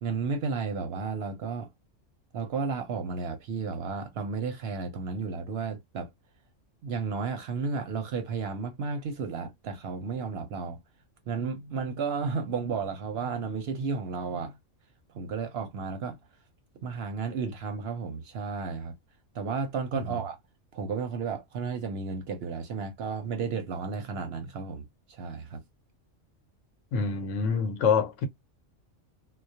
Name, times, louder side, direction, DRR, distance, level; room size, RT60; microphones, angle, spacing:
voice 1, 0.0-1.7 2.3-6.1 6.8-10.8 11.3-14.6 15.1-16.2 16.8-18.9 19.3-20.4 20.7-25.6, right 5 dB, 65° right, 0.7 m, -33 dB
voice 2, 26.9-28.3, left 5 dB, 75° left, 0.9 m, -26 dB
2.2 x 2.0 x 2.6 m
omnidirectional pair, 1.3 m